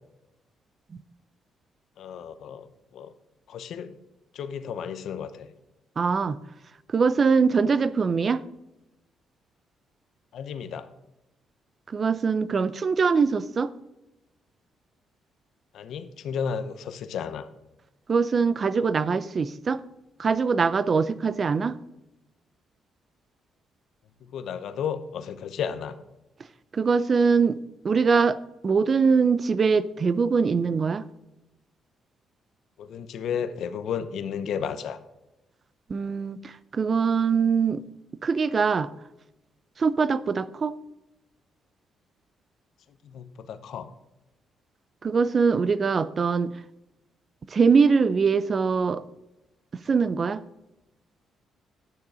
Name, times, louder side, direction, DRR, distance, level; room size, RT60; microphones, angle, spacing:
voice 1, 2.0-2.7 2.9-3.1 3.5-4.0 4.3-5.5 10.3-10.9 15.7-17.5 24.2-26.0 32.8-35.0 43.0-43.9, left 7 dB, 70° left, 0.8 m, -33 dB
voice 2, 6.0-6.4 6.9-8.4 11.9-13.7 18.1-19.8 20.2-21.8 26.7-27.6 27.8-31.1 35.9-37.8 38.2-38.9 39.8-40.7 45.0-46.5 47.5-49.0 49.7-50.4, right 5 dB, 40° right, 0.5 m, -23 dB
10.0 x 6.7 x 4.9 m
cardioid pair, 90°, 0 cm